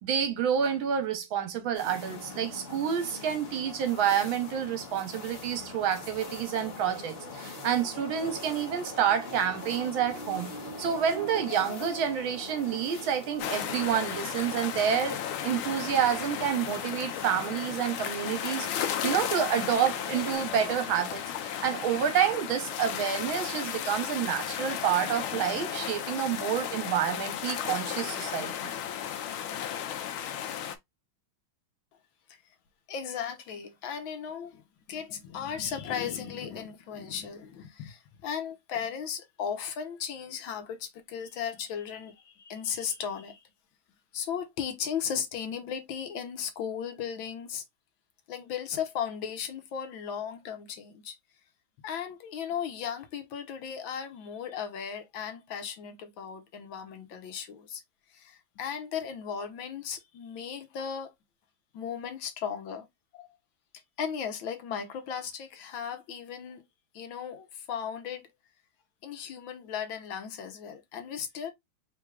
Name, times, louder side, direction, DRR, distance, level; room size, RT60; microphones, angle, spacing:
voice 1, 0.0-10.5 10.8-28.7, right 8 dB, 75° right, 1.7 m, -29 dB
sound 1, 1.7-20.4, left 3 dB, 40° left, 0.9 m, -42 dB
sound 2, 13.4-30.8, left 9 dB, 90° left, 1.5 m, -34 dB
voice 2, 32.9-34.6 34.9-43.4 44.1-47.6 48.3-51.2 51.8-57.8 58.1-61.1 61.7-62.8 63.1-63.3 64.0-66.6 66.9-68.2 69.0-71.5, left 7 dB, 70° left, 1.5 m, -36 dB
4.6 x 3.8 x 2.3 m
omnidirectional pair, 2.3 m